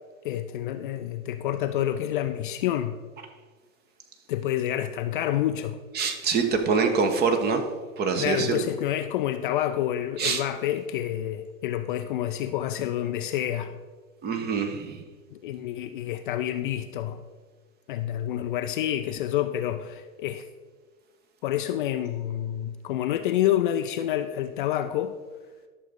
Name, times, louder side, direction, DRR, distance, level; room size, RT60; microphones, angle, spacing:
voice 1, 0.2-3.0 4.3-5.8 8.1-13.7 15.3-17.2 17.9-20.5 21.4-25.1, left 12 dB, 40° left, 8 dB, 0.4 m, -28 dB
voice 2, 5.9-7.6 8.0-8.6 10.2-10.4 14.2-15.0, right 5 dB, 25° right, 6 dB, 0.9 m, -25 dB
11.5 x 6.6 x 3.7 m, 1.4 s
figure-of-eight pair, 95°, 41 cm